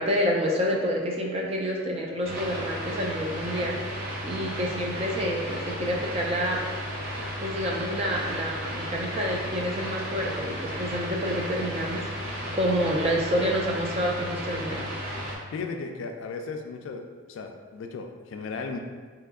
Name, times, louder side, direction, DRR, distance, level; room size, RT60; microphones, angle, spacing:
voice 1, 0.0-3.8 4.2-6.6 7.4-14.9, equal, 30° right, 0 dB, 0.3 m, -28 dB
sound 1, 2.2-15.4, equal, 50° right, 0.7 m, -34 dB
voice 2, 15.5-18.8, left 4 dB, 70° left, 4 dB, 0.3 m, -36 dB
3.4 x 2.8 x 2.3 m, 1.5 s
head